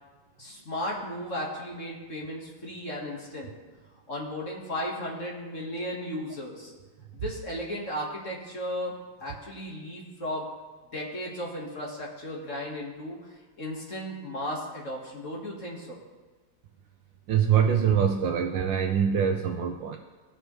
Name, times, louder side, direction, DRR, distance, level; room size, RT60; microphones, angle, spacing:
voice 1, 0.4-3.5 4.1-6.7 7.1-8.9 9.2-10.4 10.9-16.0, equal, 40° left, -2 dB, 1.6 m, -35 dB
voice 2, 17.3-20.0, right 8 dB, 75° right, 4 dB, 1.1 m, -24 dB
17.0 x 6.4 x 3.1 m, 1.3 s
omnidirectional pair, 2.4 m